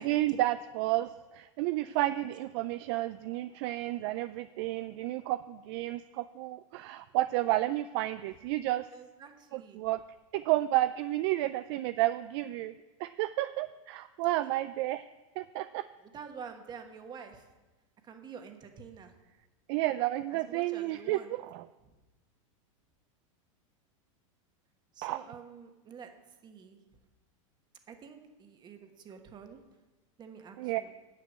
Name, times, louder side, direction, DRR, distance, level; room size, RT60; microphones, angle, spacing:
voice 1, 0.0-8.9 9.5-10.0 10.3-12.7 13.0-15.0 15.4-15.8 19.7-21.7 25.0-25.2 30.6-30.8, right 16 dB, 50° right, 13 dB, 0.4 m, -31 dB
voice 2, 8.9-9.8 14.4-14.5 16.0-17.5 18.0-19.1 20.3-21.3 21.8-21.9 24.9-26.1 26.4-26.8 27.9-29.6 30.2-30.9, right 6 dB, 25° right, 6 dB, 1.3 m, -48 dB
9.6 x 6.7 x 8.1 m, 1.2 s
supercardioid pair, 135°, 17 cm